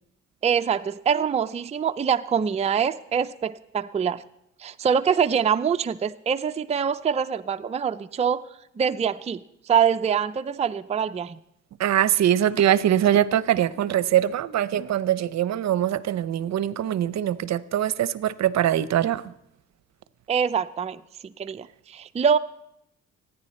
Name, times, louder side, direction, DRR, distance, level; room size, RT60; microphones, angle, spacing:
voice 1, 0.4-4.2 4.6-8.4 8.8-11.4 20.3-22.4, right 7 dB, 20° right, 0.4 m, -24 dB
voice 2, 11.8-19.3, right 11 dB, 65° right, 0.7 m, -22 dB
25.0 x 10.0 x 4.3 m
cardioid pair, 90°, 30 cm